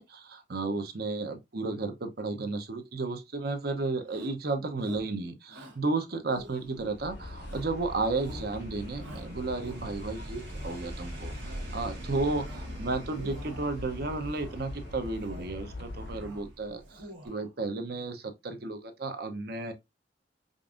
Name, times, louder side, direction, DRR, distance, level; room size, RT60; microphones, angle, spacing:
voice 1, 0.0-12.5 12.8-19.7, right 3 dB, 55° right, 0.7 m, -33 dB
Shout, 4.0-4.4 4.8-5.1 5.5-5.8 6.3-7.0 7.4-7.8 8.1-8.5 9.0-10.1 10.5-10.9 11.3-11.8 12.1-12.8 13.1-13.8 14.3-14.7 15.1-15.6 15.9-16.5 16.8-17.5, equal, 85° right, 1.7 m, -49 dB
sound 1, 6.6-17.0 17.3-17.4, right 1 dB, 70° right, 1.5 m, -44 dB
sound 2, 7.1-16.3, left 2 dB, 60° left, 0.6 m, -43 dB
5.2 x 2.5 x 2.4 m
head